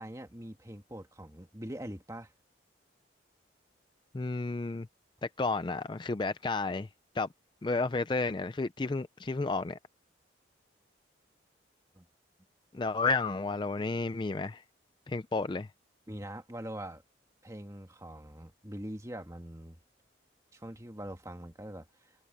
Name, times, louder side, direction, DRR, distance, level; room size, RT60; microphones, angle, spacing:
voice 1, 0.0-2.3 12.0-12.1 16.1-17.0 17.4-19.8 20.5-21.9, right 1 dB, 15° right, 1.8 m, -43 dB
voice 2, 4.1-4.9 5.2-6.9 7.1-7.3 7.6-9.8 12.7-14.6 15.1-15.7, left 3 dB, 25° left, 0.4 m, -31 dB
head